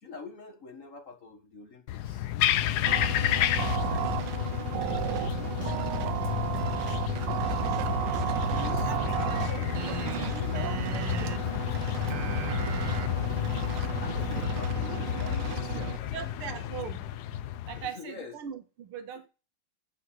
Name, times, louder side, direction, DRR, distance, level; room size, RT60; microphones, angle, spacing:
voice 1, 0.0-4.9 5.2-5.8 8.5-10.5 14.0-16.9 17.4-18.5, left 4 dB, 40° left, 1.7 m, -46 dB
sound 1, 1.9-17.9, left 12 dB, 70° left, 0.9 m, -31 dB
sound 2, 2.9-16.0, right 12 dB, 70° right, 1.2 m, -33 dB
sound 3, 5.0-5.3 5.6-6.3 6.6-7.9 8.1-10.0, equal, 15° right, 3.1 m, -51 dB
voice 2, 8.9-11.4 16.1-17.0 17.7-19.3, right 7 dB, 85° right, 2.2 m, -40 dB
7.9 x 5.7 x 7.8 m
omnidirectional pair, 2.4 m